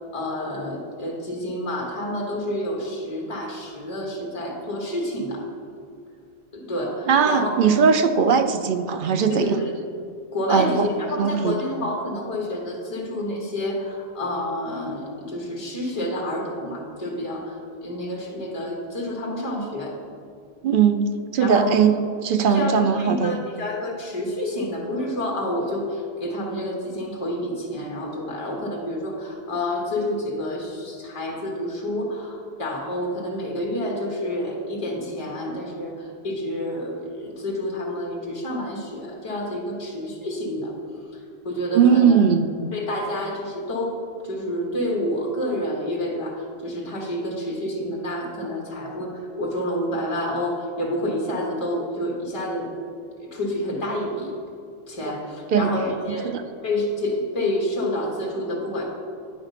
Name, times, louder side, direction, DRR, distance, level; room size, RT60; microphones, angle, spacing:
voice 1, 0.1-5.4 6.5-7.5 9.3-9.7 10.3-20.0 21.4-21.7 22.5-40.7 41.4-42.2 42.7-44.0 44.2-52.7 53.2-54.3 54.9-56.4 56.6-58.8, left 1 dB, 30° left, -2 dB, 1.4 m, -29 dB
voice 2, 7.1-9.6 10.5-10.9 11.2-11.6 20.6-21.0 21.3-21.9 22.2-23.4 41.7-42.5 55.0-55.1 55.5-55.7 56.1-56.4, right 6 dB, 60° right, 8 dB, 0.6 m, -19 dB
9.8 x 4.9 x 5.7 m, 2.4 s
omnidirectional pair, 1.1 m